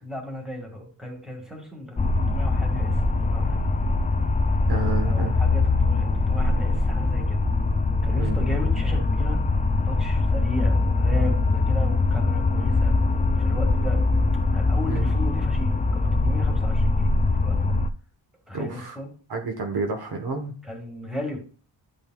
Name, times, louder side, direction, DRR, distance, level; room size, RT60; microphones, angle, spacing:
voice 1, 0.0-3.7 5.0-7.4 8.0-9.4 9.9-12.9 13.4-14.0 14.5-17.1 17.4-17.7 18.5-19.1 20.6-21.4, left 1 dB, ahead, 1 dB, 1.9 m, -35 dB
sound 1, 2.0-17.9, left 3 dB, 20° left, 0.3 m, -22 dB
voice 2, 4.7-5.4 8.2-8.4 14.9-15.1 18.5-19.0 19.3-20.6, right 3 dB, 55° right, 3 dB, 1.2 m, -29 dB
11.0 x 5.2 x 2.3 m, 0.40 s
wide cardioid pair, 135°, 46 cm